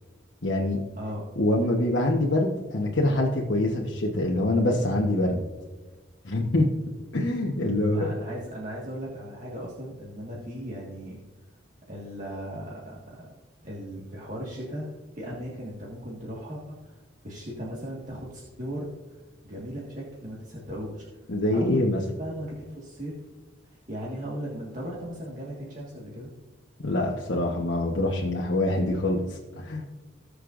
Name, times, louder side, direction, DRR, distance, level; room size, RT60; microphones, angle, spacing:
voice 1, 0.4-0.8 1.4-5.4 6.2-6.7 7.1-8.1 21.3-22.0 26.8-29.8, left 1 dB, 75° left, -2 dB, 1.2 m, -25 dB
voice 2, 7.9-11.2 11.9-13.3 13.6-18.9 19.4-21.0 21.5-23.1 23.7-26.3, equal, 40° right, -5 dB, 1.8 m, -37 dB
19.5 x 6.6 x 2.6 m, 1.2 s
head